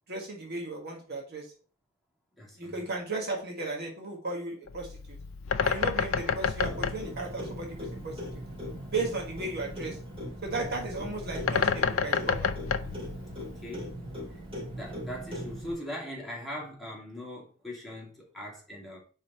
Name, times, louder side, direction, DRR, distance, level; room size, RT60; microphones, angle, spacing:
voice 1, 0.1-1.5 2.6-5.2 5.6-8.2 8.9-10.0 10.4-12.5, right 3 dB, 50° right, 1.5 m, -35 dB
voice 2, 2.4-2.8 13.4-13.9 14.3-14.4 14.7-19.0, equal, ahead, 2.4 m, -40 dB
Bird, 4.7-13.8, left 6 dB, 80° left, 0.5 m, -31 dB
Clock, 6.6-15.7, equal, 25° right, 2.6 m, -39 dB
5.0 x 4.1 x 5.6 m
head